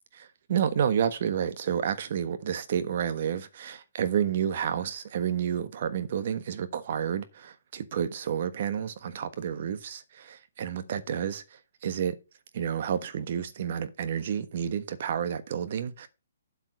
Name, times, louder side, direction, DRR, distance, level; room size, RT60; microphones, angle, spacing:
voice 1, 0.1-12.2 12.5-16.1, right 8 dB, 50° right, 1.3 m, -30 dB
8.1 x 7.1 x 5.2 m
hypercardioid pair, 145°, 0 cm